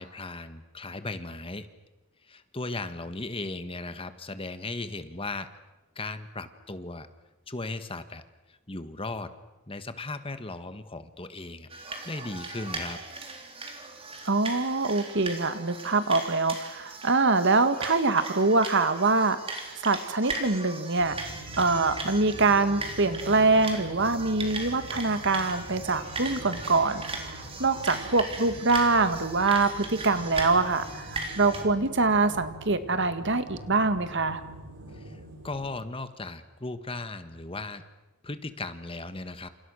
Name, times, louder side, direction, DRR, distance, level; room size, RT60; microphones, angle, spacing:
voice 1, 0.0-1.7 2.3-5.5 5.9-7.1 7.5-8.2 8.5-9.3 9.7-11.7 12.0-13.0 34.9-37.8 38.2-39.5, left 2 dB, 25° left, 10 dB, 1.5 m, -37 dB
sound 1, 11.7-31.6, right 3 dB, 25° right, 3.9 m, -38 dB
voice 2, 14.3-19.4 19.8-21.2 21.6-34.4, right 3 dB, 55° right, 11 dB, 1.9 m, -24 dB
sound 2, 21.0-35.7, right 1 dB, 80° right, 3.8 m, -44 dB
29.0 x 28.0 x 6.5 m, 1.1 s
head